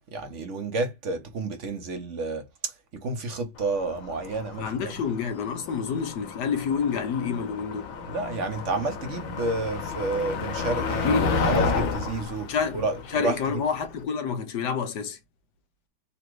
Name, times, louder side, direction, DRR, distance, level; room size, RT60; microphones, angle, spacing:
voice 1, 0.0-2.4 3.0-4.9 8.1-13.4, right 3 dB, 55° right, 0.9 m, -30 dB
Motor vehicle (road), 3.6-14.0, left 4 dB, 80° left, 1.7 m, -31 dB
voice 2, 4.6-7.9 11.0-11.4 12.5-15.2, left 6 dB, 65° left, 1.3 m, -28 dB
4.1 x 2.5 x 4.6 m
omnidirectional pair, 2.1 m